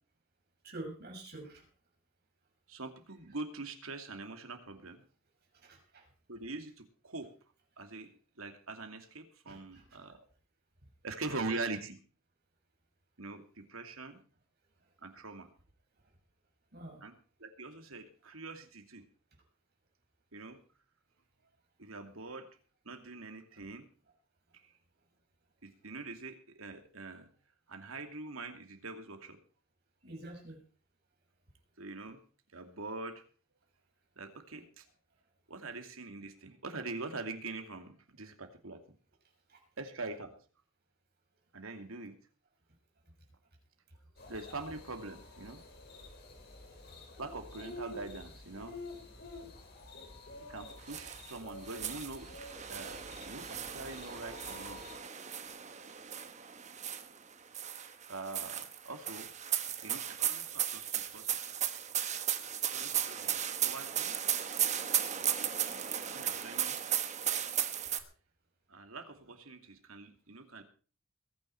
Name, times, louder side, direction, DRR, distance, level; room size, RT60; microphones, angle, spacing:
voice 1, 0.6-1.7 5.5-6.1 7.8-7.9 9.4-10.0 16.7-17.0 30.0-30.6 39.5-39.6, right 1 dB, 50° right, 1 dB, 6.3 m, -47 dB
voice 2, 2.7-5.0 6.3-7.3 7.8-8.1 8.4-10.2 11.0-12.0 13.2-14.2 15.0-15.5 17.0-17.1 17.4-19.0 20.3-20.6 21.8-22.5 22.8-23.9 25.6-27.3 27.7-29.4 31.8-32.2 32.5-33.2 34.2-34.8 35.5-38.8 39.8-40.3 41.5-42.2 44.3-45.6 47.2-48.8 50.5-52.4 52.7-54.8 58.1-59.3 59.8-61.4 62.7-64.2 66.1-66.8 68.7-70.6, right 3 dB, 90° right, 5 dB, 2.6 m, -43 dB
sound 1, 44.2-55.0, left 2 dB, 50° left, 4.6 m, -50 dB
sound 2, 50.9-51.4 51.7-57.2 57.5-68.0, right 10 dB, 35° right, 1.2 m, -35 dB
22.0 x 9.8 x 4.5 m, 0.38 s
head